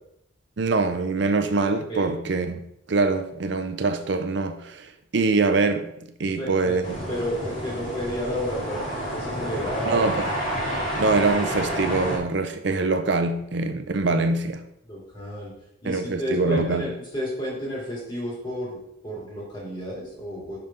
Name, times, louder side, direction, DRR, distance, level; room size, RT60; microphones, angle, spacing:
voice 1, 0.6-2.6 2.9-6.8 9.9-10.3 10.9-14.6 15.8-16.9, right 3 dB, 60° right, 0.5 m, -24 dB
voice 2, 6.2-6.8 7.1-10.1 14.0-14.2 14.8-15.5 15.8-20.6, equal, 25° left, 3.0 m, -31 dB
sound 1, 6.8-12.2, equal, 40° left, 2.6 m, -29 dB
5.7 x 5.2 x 5.5 m
head